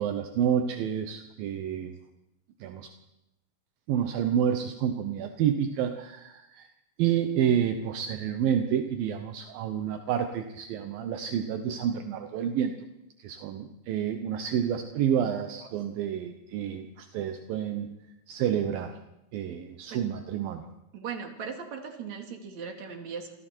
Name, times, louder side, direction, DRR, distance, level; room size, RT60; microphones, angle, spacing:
voice 1, 0.0-2.0 2.6-2.9 3.9-6.7 7.0-12.7 13.2-17.9 18.3-19.0 19.3-20.6, right 9 dB, 75° right, 6 dB, 2.8 m, -29 dB
voice 2, 20.9-23.3, right 6 dB, 50° right, 3 dB, 3.7 m, -38 dB
28.5 x 26.5 x 4.5 m, 0.93 s
omnidirectional pair, 4.2 m